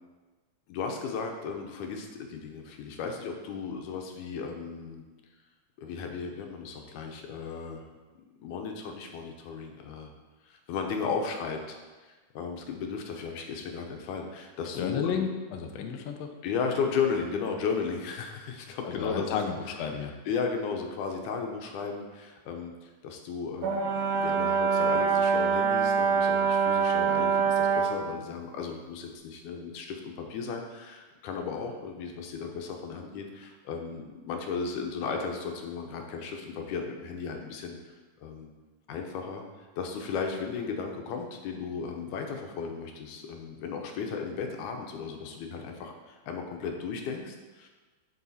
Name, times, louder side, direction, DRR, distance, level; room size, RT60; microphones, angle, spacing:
voice 1, 0.7-5.0 5.8-7.8 8.4-10.1 10.4-11.6 12.0-15.3 16.4-19.5 20.3-37.8 38.2-38.5 38.9-47.7, left 5 dB, 70° left, 3 dB, 2.1 m, -35 dB
voice 2, 14.7-16.3 18.8-20.1, left 7 dB, 90° left, 4 dB, 1.4 m, -32 dB
Brass instrument, 23.6-28.0, right 6 dB, 85° right, 3.0 m, -25 dB
10.5 x 4.9 x 4.1 m, 1.3 s
omnidirectional pair, 3.9 m